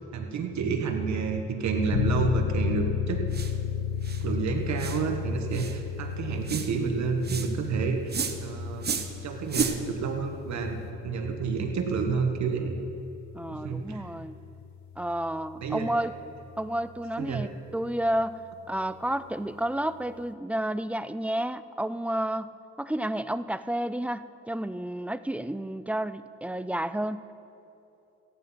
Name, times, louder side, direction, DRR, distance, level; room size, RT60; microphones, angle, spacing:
voice 1, 0.1-3.2 4.2-8.1 8.4-8.9 9.2-10.8 11.0-12.7 13.6-14.0 15.6-15.9 17.2-17.4, right 5 dB, 65° right, 4 dB, 1.4 m, -29 dB
sound 1, 1.9-16.3, left 8 dB, 65° left, 0.9 m, -34 dB
sound 2, 3.3-3.5 4.0-4.2 4.8-5.0 5.5-5.8 6.5-6.7 7.2-7.5 8.1-8.4 8.8-9.1 9.5-9.8, right 6 dB, 35° right, 1.0 m, -31 dB
voice 2, 13.3-14.4 15.0-16.2 16.6-27.3, right 1 dB, 5° right, 13 dB, 0.3 m, -31 dB
14.5 x 9.9 x 5.7 m, 2.8 s
cardioid pair, 90°, 30 cm